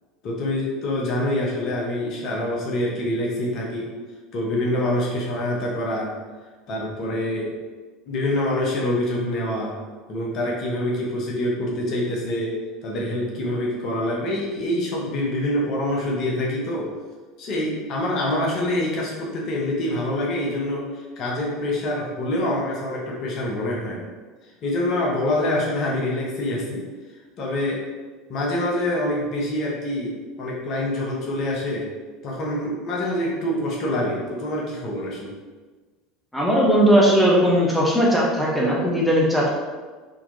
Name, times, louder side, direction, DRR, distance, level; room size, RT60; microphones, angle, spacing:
voice 1, 0.2-3.9 4.3-6.1 6.7-7.6 8.1-9.8 10.1-16.9 17.4-20.9 21.2-24.0 24.6-26.8 27.4-27.9 28.3-31.9 32.2-35.3, left 1 dB, 45° left, -3 dB, 0.8 m, -25 dB
voice 2, 36.3-39.5, equal, 5° left, -4 dB, 0.8 m, -18 dB
3.8 x 2.9 x 2.6 m, 1.4 s
figure-of-eight pair, 70°, 0 cm